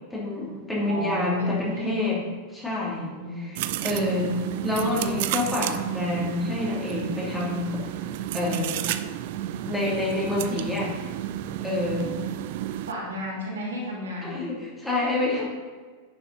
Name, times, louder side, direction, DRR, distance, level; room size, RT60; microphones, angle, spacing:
voice 1, 0.1-2.2 2.5-7.8 8.3-8.8 9.6-10.9 11.6-12.2 14.2-15.4, left 2 dB, 10° left, -5 dB, 2.9 m, -28 dB
voice 2, 0.9-2.0 3.2-4.1 12.9-14.4, equal, 65° right, -4 dB, 2.8 m, -34 dB
sound 1, 3.5-12.9, right 13 dB, 50° right, 0.4 m, -31 dB
9.8 x 6.7 x 4.1 m, 1.5 s
figure-of-eight pair, 90°, 0 cm